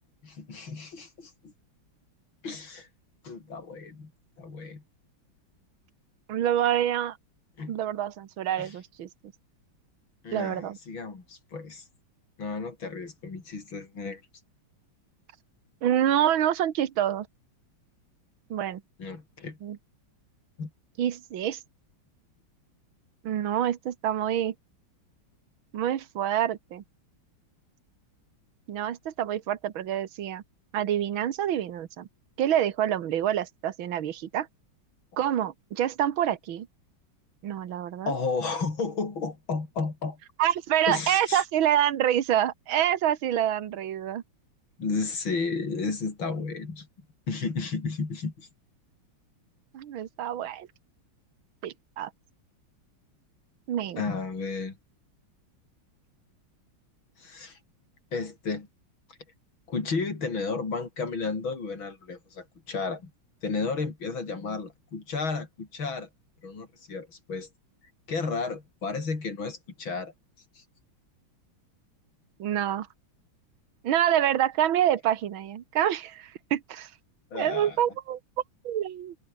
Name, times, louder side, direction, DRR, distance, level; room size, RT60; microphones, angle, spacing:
voice 1, 0.2-1.5 2.4-2.9 3.2-4.1 4.4-4.8 7.6-7.8 8.6-8.7 10.2-11.8 12.4-14.2 19.0-19.6 20.6-20.7 38.1-40.2 40.9-41.4 44.8-46.9 47.3-48.5 54.0-54.8 57.2-57.6 58.1-58.7 59.7-63.1 63.4-66.1 66.4-67.5 68.1-70.1 70.6-70.7 77.3-77.8, left 4 dB, 70° left, 5.0 m, -33 dB
voice 2, 6.3-7.2 7.7-9.1 10.3-10.8 15.8-17.3 18.5-18.8 19.6-19.8 21.0-21.6 23.2-24.5 25.7-26.8 28.7-30.4 30.7-32.1 32.4-34.5 35.2-36.7 37.4-38.1 40.4-44.2 49.7-50.7 51.6-52.1 53.7-54.0 72.4-72.9 73.8-76.9 77.3-78.2 78.6-79.2, right 11 dB, 75° right, 2.1 m, -27 dB
omnidirectional pair, 2.2 m